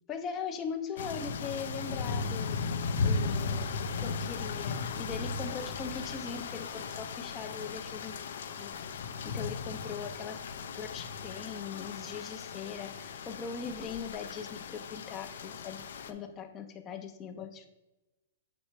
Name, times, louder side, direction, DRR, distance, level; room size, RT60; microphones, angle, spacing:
voice 1, 0.1-2.6 3.0-3.7 4.0-8.2 8.6-8.7 9.2-15.8 16.1-17.7, left 6 dB, 20° left, 6 dB, 0.4 m, -40 dB
sound 1, 1.0-16.1, left 4 dB, 75° left, 0.5 m, -36 dB
6.9 x 3.2 x 4.5 m, 1.0 s
hypercardioid pair, 160°, 0 cm